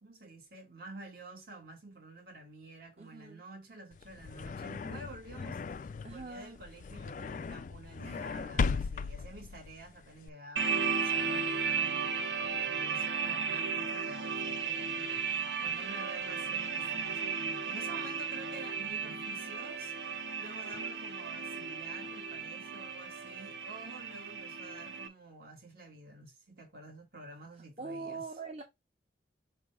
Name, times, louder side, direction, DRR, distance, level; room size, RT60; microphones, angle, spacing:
voice 1, 0.0-28.2, right 2 dB, 55° right, 2.0 m, -50 dB
voice 2, 3.0-3.4 6.0-6.6 8.0-8.7 15.6-16.1 20.7-21.0 27.8-28.6, right 4 dB, 35° right, 0.9 m, -44 dB
sound 1, 3.9-10.3, left 5 dB, 45° left, 0.3 m, -37 dB
sound 2, 10.6-25.1, right 6 dB, 90° right, 1.1 m, -35 dB
6.7 x 2.6 x 5.5 m
head